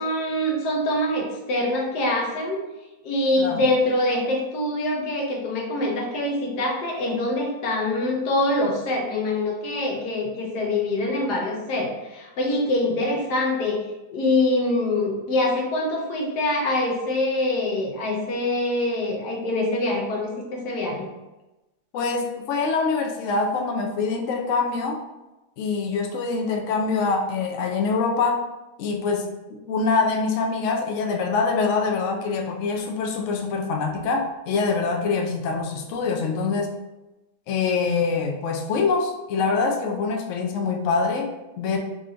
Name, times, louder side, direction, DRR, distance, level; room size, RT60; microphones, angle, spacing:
voice 1, 0.0-2.6 3.0-13.8 14.1-21.1, left 1 dB, 85° left, 0 dB, 1.4 m, -24 dB
voice 2, 21.9-25.0 25.6-28.4 28.8-29.3 29.7-36.7 37.5-41.8, left 4 dB, 65° left, 2 dB, 0.8 m, -24 dB
3.7 x 2.5 x 4.3 m, 1.0 s
omnidirectional pair, 1.7 m